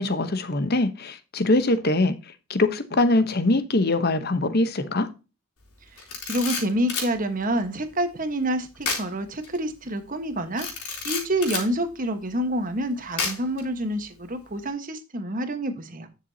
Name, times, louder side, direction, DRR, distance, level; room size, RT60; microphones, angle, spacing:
voice 1, 0.0-2.1 2.5-5.1, left 2 dB, 45° left, 1.0 m, -22 dB
Camera, 6.0-7.1 8.8-9.1 9.4-9.6 10.6-11.7 13.2-13.6, left 5 dB, 90° left, 3.9 m, -29 dB
voice 2, 6.2-10.7 11.0-16.1, right 1 dB, 35° right, 1.3 m, -27 dB
11.0 x 6.9 x 2.8 m
head